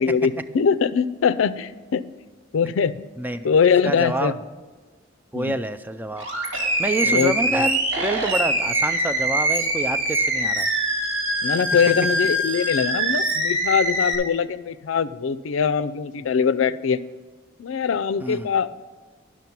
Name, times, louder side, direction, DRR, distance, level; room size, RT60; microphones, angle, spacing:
voice 1, 0.0-2.0 2.5-3.1 3.4-4.3 5.3-5.6 7.0-7.7 11.4-17.0 17.6-18.7, left 6 dB, 75° left, 14 dB, 0.4 m, -22 dB
voice 2, 3.2-3.5 3.8-4.4 5.3-6.3 6.8-10.7 18.2-18.5, right 1 dB, 10° right, 10 dB, 0.3 m, -27 dB
Animal, 6.2-14.1, right 1 dB, 75° right, 2.2 m, -23 dB
11.0 x 6.1 x 5.8 m, 1.4 s
head